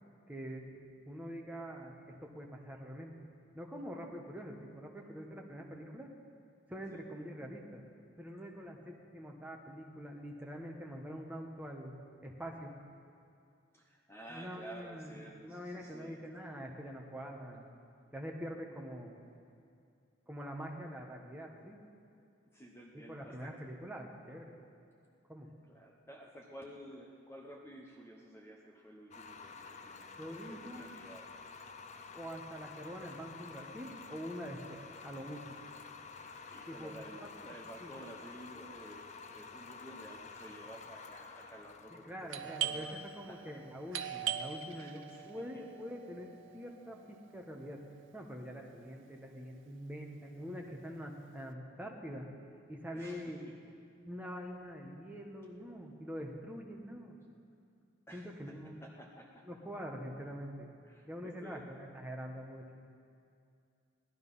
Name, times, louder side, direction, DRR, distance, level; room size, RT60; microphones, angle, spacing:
voice 1, 0.3-3.3 3.5-6.1 6.7-7.8 8.2-12.0 12.2-12.8 14.3-17.7 18.1-19.2 20.3-21.8 22.9-24.6 25.3-25.5 30.2-30.9 32.1-35.6 36.7-36.9 37.4-37.5 37.8-37.9 41.9-47.8 48.1-52.3 52.7-53.5 54.0-57.2 58.1-58.8 59.5-60.7 61.1-62.8, equal, 10° right, 1 dB, 1.2 m, -45 dB
voice 2, 13.7-16.2 22.5-23.6 25.7-31.3 36.5-43.4 44.7-45.6 52.9-53.6 58.1-58.5 58.8-59.5 60.8-61.7, right 1 dB, 10° left, -1 dB, 0.9 m, -52 dB
sound 1, 29.1-44.1, left 4 dB, 35° left, 0.6 m, -50 dB
Doorbell, 42.3-47.7, right 9 dB, 75° right, 0.7 m, -41 dB
17.5 x 12.0 x 5.5 m, 2.5 s
head